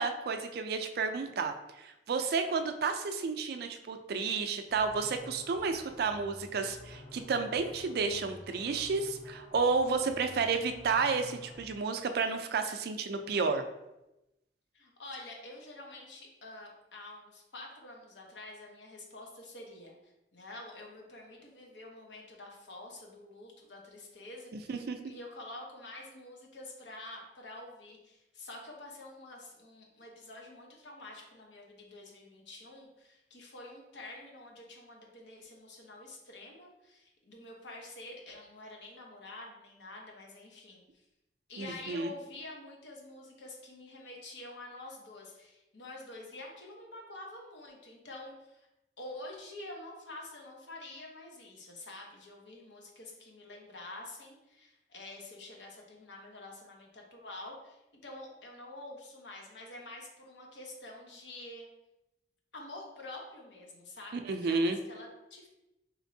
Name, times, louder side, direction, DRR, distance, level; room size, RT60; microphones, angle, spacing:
voice 1, 0.0-13.6 24.5-25.0 41.6-42.1 64.3-64.8, right 4 dB, 60° right, 7 dB, 0.4 m, -31 dB
sound 1, 4.7-11.8, left 1 dB, 65° left, 1.5 m, -51 dB
voice 2, 14.7-41.0 41.5-48.7 49.0-61.7 62.5-65.5, left 2 dB, 85° left, 0 dB, 0.9 m, -48 dB
4.3 x 3.1 x 2.6 m, 0.93 s
head